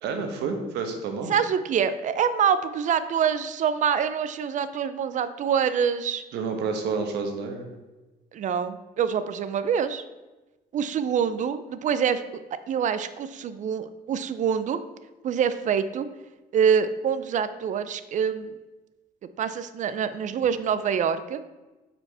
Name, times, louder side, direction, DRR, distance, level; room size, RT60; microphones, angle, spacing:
voice 1, 0.0-1.3 6.3-7.7, right 4 dB, 85° right, 5 dB, 1.2 m, -29 dB
voice 2, 1.3-6.2 8.3-10.0 10.7-12.2 12.7-14.8 15.2-16.1 16.5-18.6 19.4-21.4, right 7 dB, 45° right, 12 dB, 0.5 m, -25 dB
5.3 x 4.4 x 5.6 m, 1.1 s
cardioid pair, 110°, 17 cm